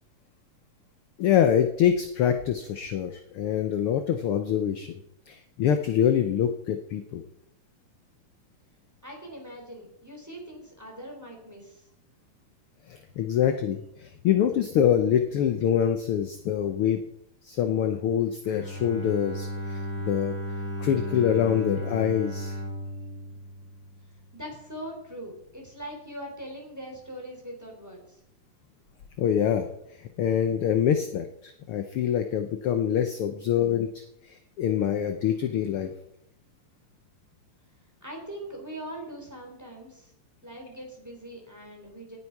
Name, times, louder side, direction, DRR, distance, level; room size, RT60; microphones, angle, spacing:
voice 1, 1.2-5.0 5.3-7.2 12.9-17.0 17.4-20.3 20.8-22.6 29.2-29.7 29.9-35.9, left 9 dB, 70° left, 7 dB, 1.3 m, -25 dB
voice 2, 9.0-11.9 24.3-28.2 37.8-40.1 40.4-42.2, right 1 dB, 5° right, 0 dB, 3.3 m, -41 dB
Bowed string instrument, 18.4-24.4, equal, 35° left, 5.5 m, -35 dB
18.5 x 8.4 x 4.7 m, 0.76 s
omnidirectional pair, 3.5 m